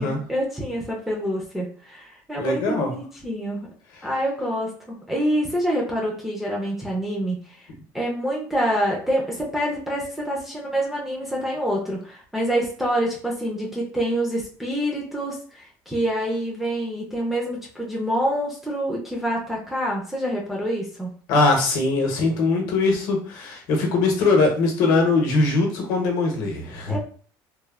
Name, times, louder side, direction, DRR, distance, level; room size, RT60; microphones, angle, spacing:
voice 1, 0.0-3.7 4.0-7.4 7.9-21.1 26.9-27.0, equal, 5° right, -2 dB, 0.4 m, -26 dB
voice 2, 2.4-2.9 21.3-26.9, left 3 dB, 60° left, 2 dB, 0.7 m, -21 dB
3.1 x 2.0 x 2.3 m, 0.44 s
cardioid pair, 175°, 7 cm